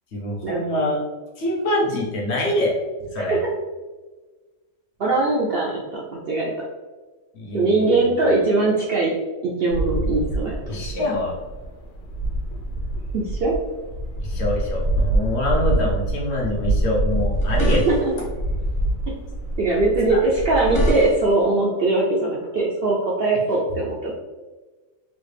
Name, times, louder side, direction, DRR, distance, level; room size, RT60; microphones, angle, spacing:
voice 1, 0.1-1.0 1.4-3.4 7.3-8.1 10.7-11.4 14.2-17.9 20.1-20.2, left 1 dB, 55° left, -3 dB, 1.0 m, -25 dB
voice 2, 5.0-6.5 7.5-9.1 9.4-10.8 13.1-13.5 17.9-18.1 19.1-19.2 19.6-24.1, right 2 dB, 65° right, -3 dB, 0.6 m, -21 dB
sound 1, 9.7-20.9, right 1 dB, 80° left, 1.1 m, -25 dB
sound 2, 17.3-18.3 20.3-21.4, equal, 35° left, 0.5 m, -26 dB
3.1 x 2.4 x 3.2 m, 1.3 s
omnidirectional pair, 1.4 m